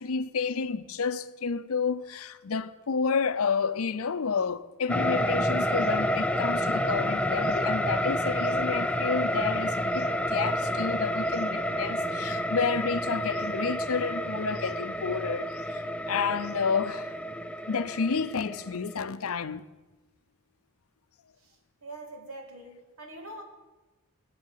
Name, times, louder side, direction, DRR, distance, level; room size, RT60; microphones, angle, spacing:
voice 1, 0.0-17.1 17.7-19.7, left 5 dB, 75° left, 0.6 m, -30 dB
sound 1, 4.9-19.1, equal, 5° left, 0.4 m, -29 dB
voice 2, 21.8-23.4, right 1 dB, 75° right, 2.4 m, -43 dB
20.0 x 7.7 x 5.7 m
head